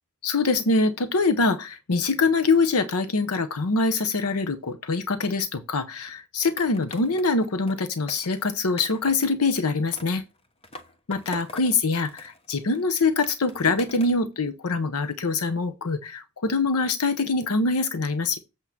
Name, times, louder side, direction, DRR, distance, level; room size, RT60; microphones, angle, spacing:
voice 1, 0.2-10.2 11.1-18.4, left 3 dB, 90° left, 0.8 m, -24 dB
Skateboard, 6.6-9.3 9.9-11.8 12.0-14.2, left 2 dB, 25° left, 1.0 m, -44 dB
8.3 x 3.8 x 5.9 m
head